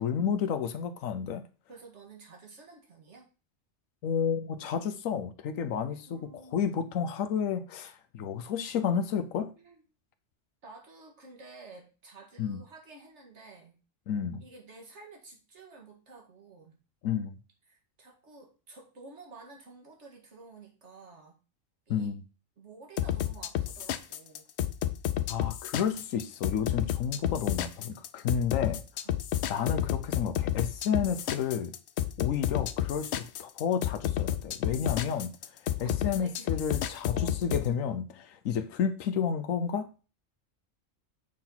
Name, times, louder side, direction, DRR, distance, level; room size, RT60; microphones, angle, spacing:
voice 1, 0.0-1.4 4.0-6.2 6.5-9.5 12.4-12.6 14.1-14.4 17.0-17.4 21.9-22.2 25.3-28.8 29.5-31.7 32.2-35.4 35.8-39.9, left 7 dB, 85° left, 1.1 m, -31 dB
voice 2, 1.7-3.3 6.1-6.9 9.6-9.8 10.6-13.8 14.4-16.8 17.7-21.4 21.9-22.1 22.6-24.5 26.4-26.7 29.0-29.2 35.8-36.6 37.1-37.4, right 3 dB, 60° right, 2.1 m, -51 dB
sound 1, 23.0-37.7, left 11 dB, 65° left, 0.8 m, -30 dB
7.4 x 4.4 x 3.9 m
omnidirectional pair, 1.3 m